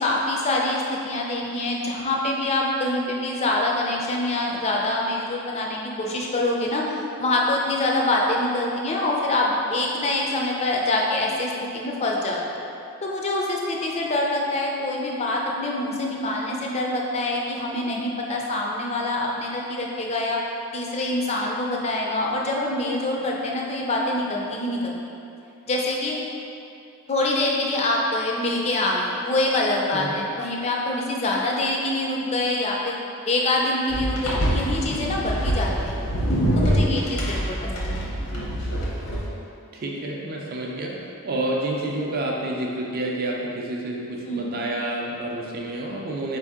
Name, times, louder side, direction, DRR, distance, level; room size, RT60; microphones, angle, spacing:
voice 1, 0.0-6.8 7.2-12.6 13.0-20.4 20.7-25.0 25.7-26.2 27.1-33.0 33.3-36.0 36.6-38.1 44.3-44.7, left 2 dB, 30° left, -2 dB, 0.4 m, -25 dB
sound 1, 33.9-39.3, equal, 85° left, 0.8 m, -25 dB
voice 2, 39.7-41.0 41.2-46.4, right 1 dB, 45° right, -2 dB, 0.4 m, -29 dB
4.4 x 2.7 x 3.5 m, 2.7 s
head